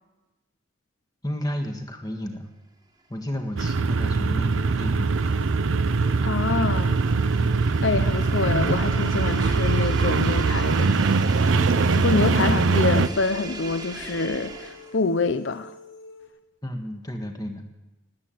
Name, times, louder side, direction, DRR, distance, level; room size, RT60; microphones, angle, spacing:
voice 1, 1.2-2.5 3.1-5.5 7.4-7.7 12.5-12.7 16.6-17.6, equal, 20° left, 1.5 m, -32 dB
sound 1, 3.1-15.1, right 2 dB, 20° right, 1.3 m, -40 dB
sound 2, 3.6-13.1, right 4 dB, 75° right, 0.6 m, -22 dB
sound 3, 3.8-16.3, left 2 dB, 85° left, 3.9 m, -47 dB
voice 2, 6.2-7.0 7.8-11.0 11.9-15.7, left 4 dB, 65° left, 0.7 m, -26 dB
19.0 x 8.5 x 7.9 m
head